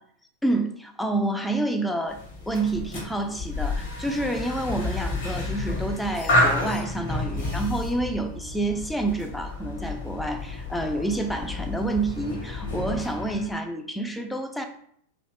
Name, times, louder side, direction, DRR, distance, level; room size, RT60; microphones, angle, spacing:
voice 1, 0.4-2.2 2.5-14.6, right 2 dB, 5° left, 5 dB, 0.3 m, -28 dB
sound 1, 2.1-13.5, left 2 dB, 55° left, 0.9 m, -30 dB
2.5 x 2.1 x 2.8 m, 0.65 s
figure-of-eight pair, 90°, 0 cm